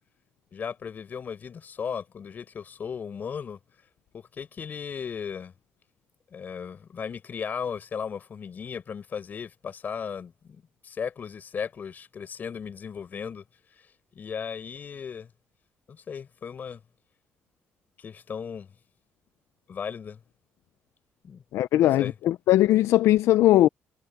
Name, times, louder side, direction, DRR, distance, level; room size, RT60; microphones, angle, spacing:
voice 1, 0.5-3.6 4.1-5.5 6.3-13.4 14.1-15.3 15.9-16.8 18.0-18.7 19.7-20.2 21.2-21.4 22.0-22.1, left 7 dB, 40° left, 6.2 m, -36 dB
voice 2, 21.5-23.7, left 14 dB, 85° left, 0.6 m, -20 dB
cardioid pair, 135°, 5 cm